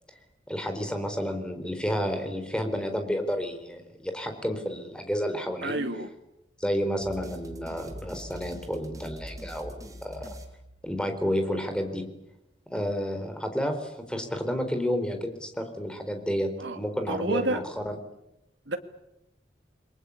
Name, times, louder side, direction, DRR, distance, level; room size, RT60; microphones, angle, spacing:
voice 1, 0.5-5.7 6.6-10.3 10.8-12.0 12.7-18.0, equal, 5° left, 6 dB, 4.1 m, -31 dB
voice 2, 5.6-6.1 16.6-16.8 17.1-17.6 18.7-18.8, right 2 dB, 80° right, 6 dB, 2.3 m, -29 dB
sound 1, 7.0-11.3, equal, 20° right, 3.8 m, -43 dB
29.5 x 22.0 x 8.6 m, 0.86 s
head